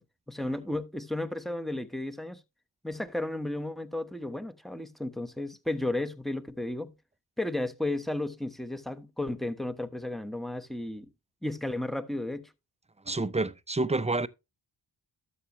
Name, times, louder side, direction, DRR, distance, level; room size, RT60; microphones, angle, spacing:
voice 1, 0.3-2.4 2.8-6.9 7.4-11.1 11.4-12.5, left 1 dB, ahead, 1.1 m, -33 dB
voice 2, 13.1-14.3, right 2 dB, 15° right, 0.6 m, -28 dB
12.5 x 7.0 x 3.0 m
cardioid pair, 70°, 43 cm